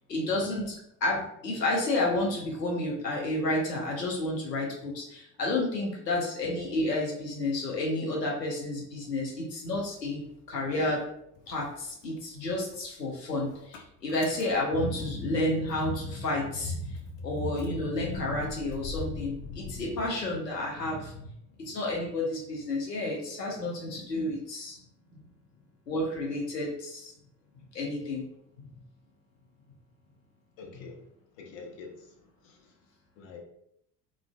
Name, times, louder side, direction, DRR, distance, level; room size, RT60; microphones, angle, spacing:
voice 1, 0.1-0.7 1.0-10.2 10.5-11.0 11.5-21.1 21.6-24.8 25.9-27.1 27.7-28.2, left 2 dB, 85° left, -2 dB, 0.6 m, -30 dB
Motor vehicle (road) / Engine starting, 9.8-11.1 11.4-16.0 16.3-16.4 16.7-20.8, left 4 dB, 30° left, 0.3 m, -45 dB
voice 2, 30.6-31.0 31.4-32.7 33.2-33.4, left 4 dB, 50° left, 1 dB, 0.7 m, -47 dB
3.0 x 2.4 x 2.2 m, 0.74 s
figure-of-eight pair, 65°, 48 cm